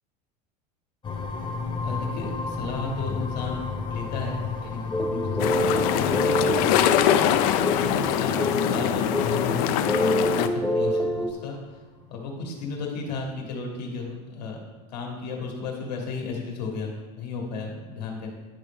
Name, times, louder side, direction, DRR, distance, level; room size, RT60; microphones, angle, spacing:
sound 1, 1.0-11.6, left 4 dB, 25° left, 0.9 m, -34 dB
voice 1, 1.8-3.6 3.9-6.7 7.0-11.6 12.1-14.6 14.9-18.3, left 4 dB, 85° left, -1 dB, 1.6 m, -34 dB
sound 2, 4.9-11.3, equal, 5° left, 0.4 m, -27 dB
sound 3, 5.4-10.5, left 10 dB, 60° left, 0.5 m, -23 dB
10.0 x 4.1 x 3.5 m, 1.3 s
hypercardioid pair, 100°, 21 cm